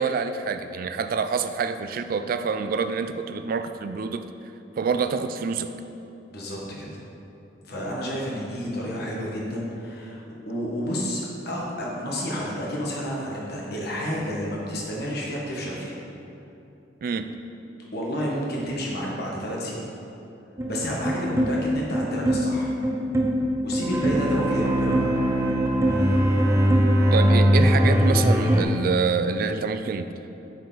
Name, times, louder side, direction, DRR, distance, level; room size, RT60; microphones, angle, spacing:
voice 1, 0.0-4.2 4.8-5.7 17.0-17.3 27.1-30.1, right 5 dB, 55° right, 9 dB, 0.3 m, -26 dB
voice 2, 6.3-6.9 7.6-16.0 17.9-19.9 20.7-22.7 23.6-25.1, equal, 60° left, -3 dB, 1.3 m, -30 dB
sound 1, 20.6-28.6, equal, 15° right, 0.6 m, -21 dB
8.1 x 4.7 x 4.0 m, 2.8 s
head